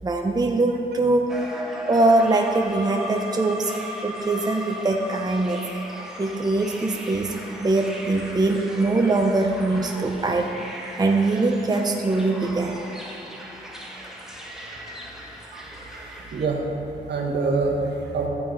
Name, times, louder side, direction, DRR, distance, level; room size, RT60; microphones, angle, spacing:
voice 1, 0.0-1.3 1.8-5.6 6.2-10.5 11.0-12.8, right 2 dB, 20° right, 2 dB, 0.6 m, -22 dB
sound 1, 1.3-16.5, equal, 5° right, 1.2 m, -37 dB
voice 2, 15.5-16.6 17.0-18.3, right 3 dB, 70° right, -1 dB, 1.4 m, -26 dB
14.0 x 5.8 x 3.9 m, 2.9 s
cardioid pair, 90°, 18 cm